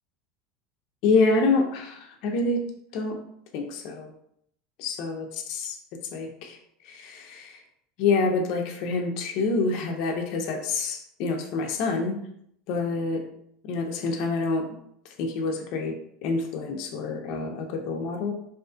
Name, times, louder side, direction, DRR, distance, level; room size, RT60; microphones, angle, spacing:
voice 1, 1.0-2.6 2.9-3.2 3.5-4.1 4.8-5.8 6.1-6.6 6.8-7.6 8.0-12.2 12.7-13.2 13.6-14.8 15.2-16.0 16.2-18.3, left 3 dB, 45° left, 3 dB, 0.3 m, -27 dB
2.4 x 2.3 x 2.3 m, 0.70 s
supercardioid pair, 170°, 0 cm